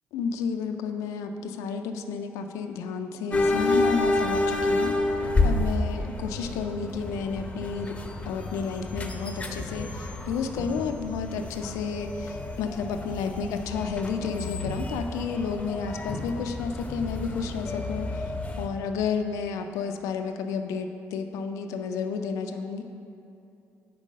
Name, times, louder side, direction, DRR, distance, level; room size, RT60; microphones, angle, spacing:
voice 1, 0.1-4.9 5.4-7.9 8.3-22.8, left 5 dB, 90° left, 6 dB, 0.4 m, -31 dB
sound 1, 3.3-18.7, left 2 dB, 25° left, 0.7 m, -29 dB
5.3 x 4.5 x 6.3 m, 2.8 s
cardioid pair, 80°, 5 cm